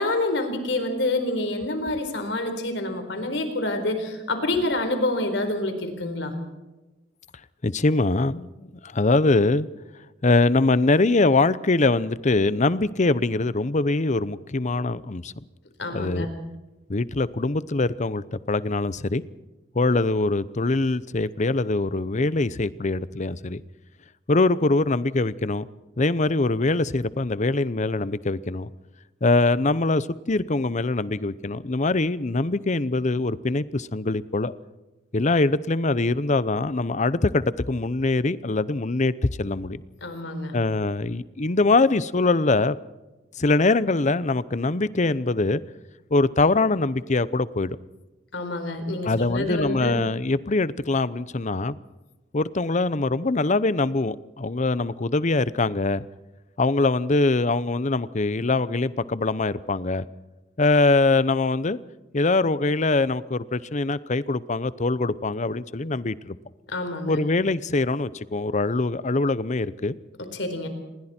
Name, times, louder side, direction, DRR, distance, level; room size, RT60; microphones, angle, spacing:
voice 1, 0.0-6.3 15.8-16.3 40.0-40.5 48.3-50.0 66.7-67.2 70.2-70.7, left 2 dB, 70° left, 4.3 m, -27 dB
voice 2, 7.6-9.7 10.2-15.3 15.9-16.3 16.9-19.2 19.7-23.6 24.3-25.7 26.0-28.7 29.2-34.5 35.1-39.1 39.4-39.8 40.5-42.8 43.4-45.6 46.1-47.8 49.0-51.8 52.3-56.0 56.6-60.0 60.6-61.8 62.1-66.4 67.1-69.9, left 3 dB, 40° left, 0.8 m, -23 dB
28.0 x 21.0 x 4.4 m
head